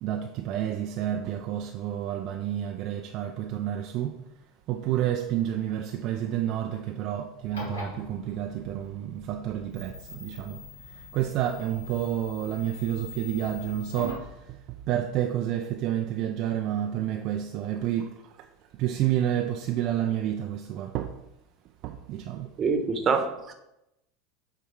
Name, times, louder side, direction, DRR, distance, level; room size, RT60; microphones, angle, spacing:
voice 1, 0.0-4.2 4.7-10.6 11.1-14.6 14.9-18.1 18.8-21.1 21.8-22.5, right 11 dB, 50° right, 0.5 m, -29 dB
sound 1, 7.4-14.3, left 2 dB, 75° left, 2.0 m, -42 dB
voice 2, 22.6-23.5, right 5 dB, 30° right, 1.1 m, -25 dB
8.2 x 3.5 x 4.7 m
figure-of-eight pair, 75°, 0 cm